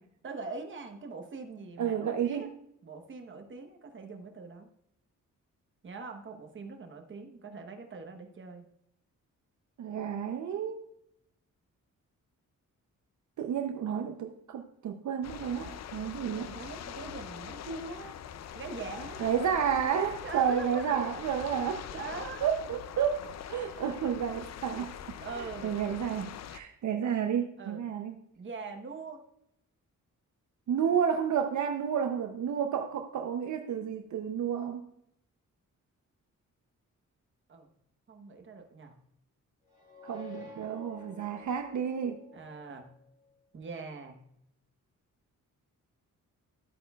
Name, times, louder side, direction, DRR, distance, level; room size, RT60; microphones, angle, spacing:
voice 1, 0.2-2.5 2.8-4.7 5.8-8.6 16.5-18.2 18.5-19.2 20.2-21.2 22.0-22.4 25.2-25.8 27.6-27.8 28.4-29.2 37.5-37.7 38.1-39.0 42.3-42.9 43.5-44.2, right 4 dB, 40° right, 4 dB, 1.0 m, -42 dB
voice 2, 1.8-2.5 9.8-10.8 13.4-16.5 19.2-21.8 22.4-24.9 25.3-28.1 30.7-34.8 40.0-42.2, right 8 dB, 65° right, 5 dB, 0.6 m, -31 dB
sound 1, 15.2-26.6, left 9 dB, 55° left, 0.4 m, -43 dB
sound 2, 39.7-43.2, left 3 dB, 15° right, 3.8 m, -50 dB
12.0 x 8.3 x 2.3 m, 0.77 s
wide cardioid pair, 150°, 32 cm